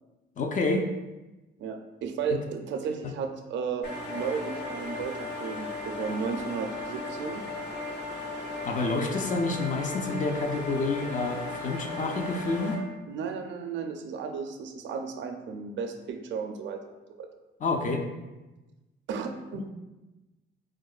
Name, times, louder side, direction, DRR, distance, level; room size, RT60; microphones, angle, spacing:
voice 1, 0.4-0.9 8.6-12.8 17.6-18.1 19.5-19.7, left 3 dB, 40° left, 4 dB, 0.4 m, -28 dB
voice 2, 1.6-7.4 13.1-16.8 17.2-17.3 19.1-19.7, right 6 dB, 70° right, 5 dB, 0.4 m, -34 dB
sound 1, 3.8-12.7, left 2 dB, 60° left, 0.8 m, -36 dB
4.6 x 2.1 x 2.3 m, 1.1 s
cardioid pair, 90°, 20 cm